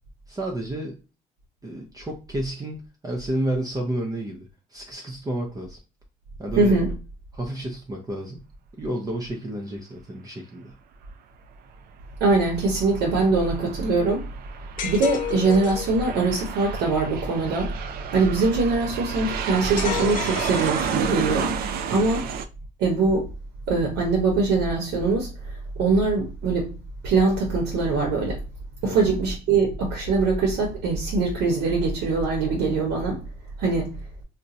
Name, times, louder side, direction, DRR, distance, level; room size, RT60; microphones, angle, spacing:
voice 1, 0.3-1.0 1.6-5.8 6.4-6.8 7.3-8.4 8.8-10.7 21.9-22.2 28.8-29.0, right 1 dB, 20° right, 0.6 m, -31 dB
voice 2, 6.6-6.9 12.2-14.3 14.8-17.7 18.1-21.5 21.9-22.3 22.8-23.3 23.7-26.7 27.0-28.4 28.8-33.2 33.6-33.9, right 3 dB, 85° right, 1.0 m, -22 dB
Aircraft, 12.3-22.5, right 7 dB, 65° right, 0.4 m, -32 dB
sound 1, 14.8-16.0 19.8-21.4, left 9 dB, 50° left, 0.5 m, -32 dB
2.6 x 2.2 x 4.0 m
cardioid pair, 110°, 17 cm